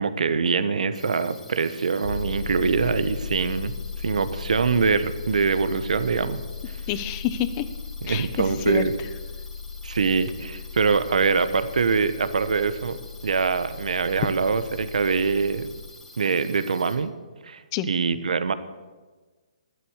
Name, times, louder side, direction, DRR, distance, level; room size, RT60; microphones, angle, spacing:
voice 1, 0.0-6.4 6.7-6.8 8.0-8.9 9.8-15.7 16.2-17.1 17.4-18.5, right 5 dB, 75° right, 12 dB, 1.1 m, -24 dB
sound 1, 0.9-16.9, left 2 dB, 5° left, 2.1 m, -48 dB
sound 2, 2.0-15.9, left 6 dB, 55° left, 0.9 m, -37 dB
voice 2, 6.9-7.7 8.1-8.8 17.7-17.9, left 11 dB, 25° left, 12 dB, 0.9 m, -28 dB
12.5 x 11.0 x 6.5 m, 1.3 s
hypercardioid pair, 150°, 4 cm